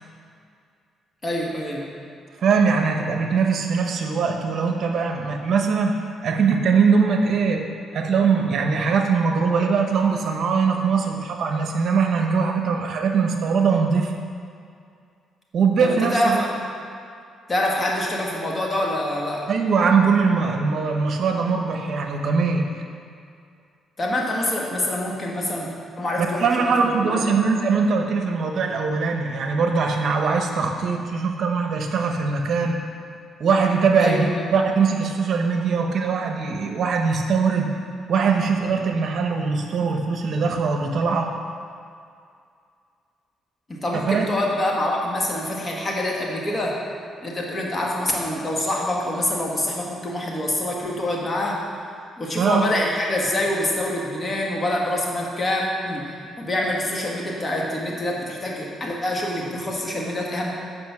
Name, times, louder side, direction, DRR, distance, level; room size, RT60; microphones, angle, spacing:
voice 1, 1.2-1.9 15.8-16.6 17.5-19.5 24.0-27.4 34.0-34.4 43.7-46.8 47.2-51.6 52.2-56.0 56.4-60.5, left 1 dB, 30° left, -2 dB, 1.7 m, -25 dB
voice 2, 2.4-5.9 6.2-7.7 7.9-14.1 15.5-16.4 19.5-22.7 26.2-32.8 33.4-37.7 38.1-41.3 43.9-44.2 52.4-52.6, right 5 dB, 60° right, 3 dB, 0.8 m, -21 dB
8.1 x 5.4 x 5.9 m, 2.3 s
cardioid pair, 90°, 0 cm